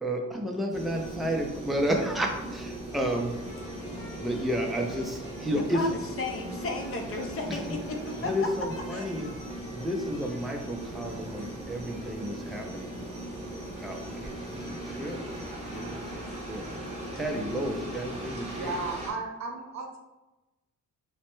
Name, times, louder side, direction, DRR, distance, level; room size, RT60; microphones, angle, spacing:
voice 1, 0.0-3.4 4.2-5.8 7.5-7.6 8.2-9.3 9.7-13.0 13.8-15.3 15.7-16.7 17.1-18.8, equal, ahead, 1 dB, 0.4 m, -32 dB
sound 1, 0.7-19.1, right 1 dB, 25° right, 0.7 m, -39 dB
sound 2, 2.9-18.2, left 2 dB, 90° left, 0.9 m, -49 dB
voice 2, 5.7-8.5 8.9-9.2, left 3 dB, 50° left, 3 dB, 0.5 m, -34 dB
voice 3, 18.5-20.0, right 3 dB, 65° right, 2 dB, 0.6 m, -35 dB
3.1 x 2.1 x 3.0 m, 1.0 s
cardioid pair, 100°, 29 cm